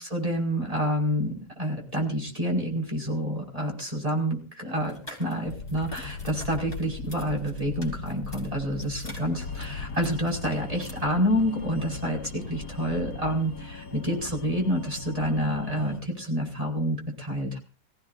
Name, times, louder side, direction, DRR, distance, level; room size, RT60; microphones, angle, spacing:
voice 1, 0.0-17.6, equal, 20° right, 0 dB, 5.3 m, -28 dB
sound 1, 4.8-10.9, left 1 dB, 15° left, 5.4 m, -48 dB
sound 2, 5.4-13.4, left 4 dB, 75° left, 1.8 m, -40 dB
sound 3, 9.4-16.0, left 3 dB, 60° left, 2.4 m, -41 dB
25.5 x 16.0 x 2.6 m, 0.35 s
omnidirectional pair, 1.8 m